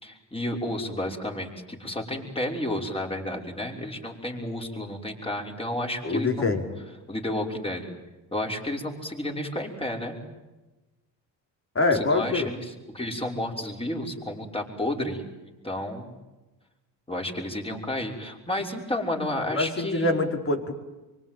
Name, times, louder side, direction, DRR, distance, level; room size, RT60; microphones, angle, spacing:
voice 1, 0.0-6.5 7.1-7.9 8.3-10.2 11.9-16.1 17.1-20.1, left 1 dB, 10° left, 1 dB, 5.9 m, -31 dB
voice 2, 6.0-6.6 11.7-12.5 19.5-20.7, left 3 dB, 30° left, 3 dB, 4.8 m, -25 dB
25.0 x 25.0 x 9.4 m, 1.1 s
supercardioid pair, 90°, 45 cm